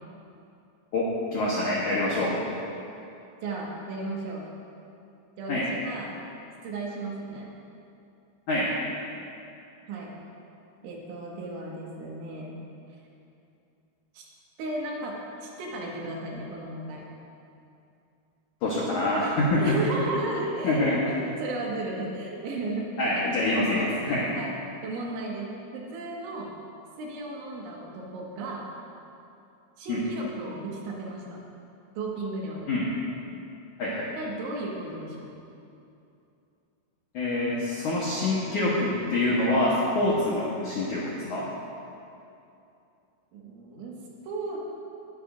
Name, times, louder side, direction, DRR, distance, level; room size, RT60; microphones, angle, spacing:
voice 1, 0.9-2.4 5.5-5.7 8.5-8.7 18.6-19.8 20.6-21.0 23.0-24.3 29.9-30.0 32.7-32.9 33.8-34.1 37.1-41.5, left 2 dB, 75° left, -6 dB, 1.8 m, -26 dB
voice 2, 3.4-4.5 5.4-6.1 6.6-7.5 9.9-10.2 10.8-12.6 14.1-14.2 14.6-17.1 19.6-23.3 23.7-24.0 24.4-24.5 24.8-26.5 27.0-28.7 29.8-31.4 32.0-32.7 34.2-35.3 43.3-44.0 44.3-44.7, right 2 dB, 85° right, -3 dB, 4.0 m, -34 dB
19.5 x 10.5 x 2.6 m, 2.7 s
omnidirectional pair, 5.3 m